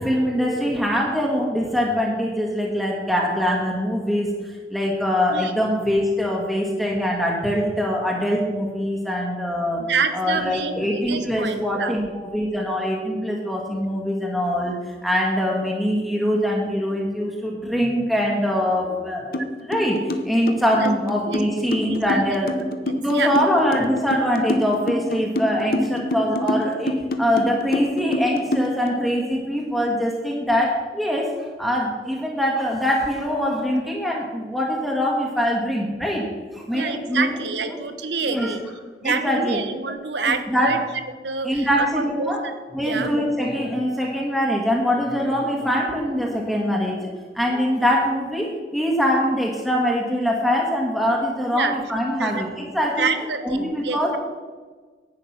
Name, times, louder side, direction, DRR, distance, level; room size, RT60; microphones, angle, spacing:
voice 1, 0.0-9.8 10.1-14.7 15.0-19.4 19.7-20.0 20.2-22.5 23.0-37.4 37.6-37.8 38.2-38.5 39.0-39.6 40.2-40.8 41.4-42.4 42.7-53.1 53.4-54.2, equal, ahead, -3 dB, 1.6 m, -23 dB
voice 2, 9.8-12.0 20.7-20.9 21.3-22.4 22.9-23.4 36.7-38.6 39.0-40.8 41.2-41.9 42.2-42.5 42.8-43.1 51.5-51.7 52.2-52.4 53.0-54.2, right 5 dB, 80° right, 9 dB, 1.1 m, -27 dB
sound 1, 19.3-19.5 19.7-28.9, left 1 dB, 55° left, 1.0 m, -25 dB
10.5 x 8.9 x 5.9 m, 1.4 s
head